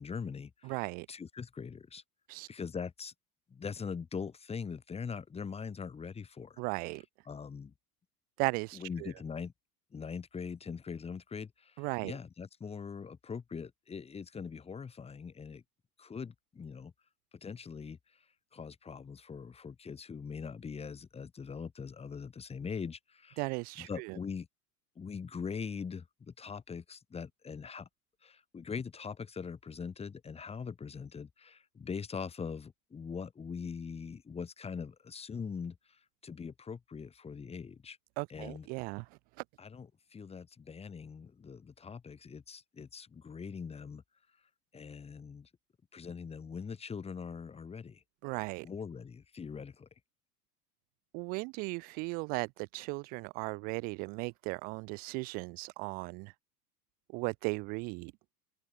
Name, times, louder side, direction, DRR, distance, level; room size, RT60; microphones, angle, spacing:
voice 1, 0.0-2.0 2.5-3.1 3.5-6.6 6.9-7.7 8.7-9.5 9.9-15.6 16.0-16.9 17.4-18.0 18.5-23.5 23.8-24.5 25.0-27.9 28.2-38.0 38.3-38.7 39.6-44.0 44.7-45.5 45.9-48.0 48.6-49.9, left 6 dB, 15° left, 1.2 m, -42 dB
voice 2, 0.7-1.1 2.3-2.5 6.6-7.0 8.4-9.1 11.8-12.1 23.4-24.1 38.2-39.0 48.2-48.7 51.1-56.3 57.1-58.1, right 30 dB, 20° right, 0.3 m, -36 dB
open air
figure-of-eight pair, 85°, 46 cm